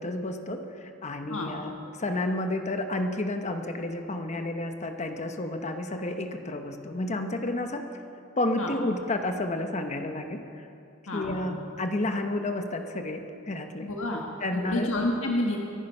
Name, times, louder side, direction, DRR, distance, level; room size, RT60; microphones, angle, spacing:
voice 1, 0.0-7.9 8.4-10.7 11.1-13.9 14.4-14.9, left 2 dB, 35° left, 6 dB, 0.9 m, -31 dB
voice 2, 11.1-11.6 13.8-14.2 14.5-15.6, left 1 dB, 85° left, 0 dB, 1.5 m, -29 dB
24.0 x 10.5 x 5.5 m, 2.7 s
head